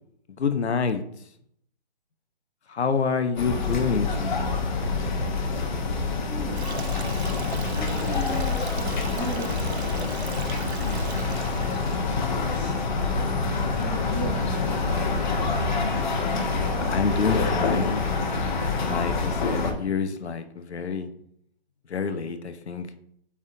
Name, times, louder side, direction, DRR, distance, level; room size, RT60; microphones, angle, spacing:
voice 1, 0.4-1.0 2.7-4.5 16.9-18.4 18.8-21.1 21.9-22.9, left 5 dB, 85° left, 9 dB, 0.9 m, -27 dB
sound 1, 3.4-19.7, left 4 dB, 45° left, 1.0 m, -26 dB
voice 2, 6.1-6.8 7.7-12.0 12.3-13.4 13.7-15.3, equal, 10° left, -5 dB, 1.6 m, -38 dB
Stream, 6.6-18.3, right 6 dB, 85° right, 0.8 m, -40 dB
8.7 x 3.6 x 3.7 m, 0.69 s
hypercardioid pair, 170°, 32 cm